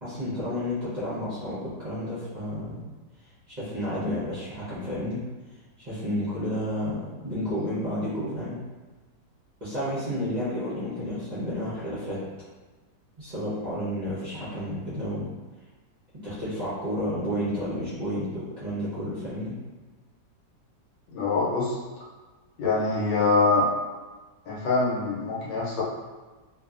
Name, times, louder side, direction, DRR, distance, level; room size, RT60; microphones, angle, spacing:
voice 1, 0.0-2.8 3.5-5.2 5.8-8.6 9.6-12.2 13.2-15.3 16.2-19.6, equal, 45° right, -11 dB, 0.5 m, -31 dB
voice 2, 21.1-21.8 22.6-23.7 24.5-25.8, left 3 dB, 80° left, -5 dB, 1.3 m, -24 dB
2.6 x 2.6 x 2.4 m, 1.3 s
omnidirectional pair, 1.9 m